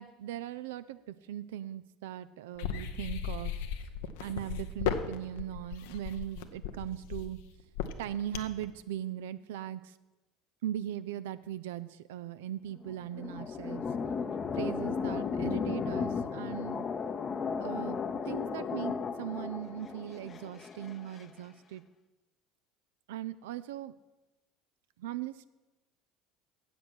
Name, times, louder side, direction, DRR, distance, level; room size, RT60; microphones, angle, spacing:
voice 1, 0.0-3.5 4.2-7.4 8.0-10.0 10.6-13.8 14.5-16.8 17.6-18.0 18.3-21.8 23.1-23.9 25.0-25.5, right 11 dB, 75° right, 14 dB, 0.3 m, -39 dB
sound 1, 2.6-8.6, left 8 dB, 75° left, 0.7 m, -36 dB
sound 2, 12.7-21.2, left 5 dB, 35° left, 0.7 m, -35 dB
7.8 x 7.7 x 6.1 m, 1.1 s
hypercardioid pair, 70°, 0 cm